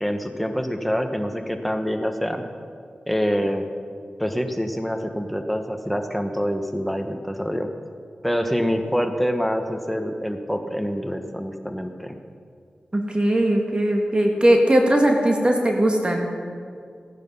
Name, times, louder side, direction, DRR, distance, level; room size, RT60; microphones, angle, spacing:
voice 1, 0.0-2.4 3.1-3.7 4.2-7.7 8.2-12.1, equal, ahead, 6 dB, 1.4 m, -26 dB
voice 2, 12.9-16.3, right 1 dB, 30° right, 2 dB, 1.8 m, -19 dB
15.0 x 9.8 x 5.6 m, 2.1 s
cardioid pair, 45°, 3 cm